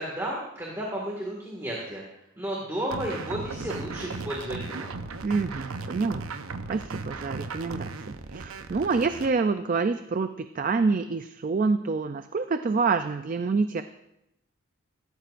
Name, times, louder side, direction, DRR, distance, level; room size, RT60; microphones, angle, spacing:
voice 1, 0.0-2.0 2.4-4.9, right 1 dB, 15° right, -3 dB, 1.8 m, -33 dB
sound 1, 2.9-9.3, right 3 dB, 80° right, 0.8 m, -36 dB
voice 2, 5.2-6.3 6.7-13.8, right 4 dB, 40° right, 9 dB, 0.4 m, -27 dB
16.5 x 13.5 x 2.5 m, 0.87 s
head